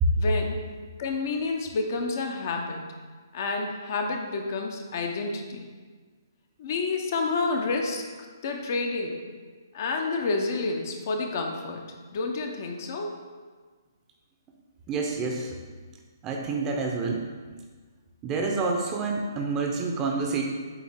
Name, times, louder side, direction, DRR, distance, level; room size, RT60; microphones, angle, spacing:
voice 1, 0.2-0.6 1.0-2.8 3.3-5.6 6.6-8.0 8.4-9.2 9.7-11.8 12.1-13.1, left 3 dB, 45° left, 2 dB, 0.7 m, -29 dB
voice 2, 14.9-15.6 16.2-17.3 18.2-20.4, right 3 dB, 20° right, 1 dB, 0.7 m, -27 dB
7.7 x 2.8 x 4.4 m, 1.5 s
figure-of-eight pair, 130°, 2 cm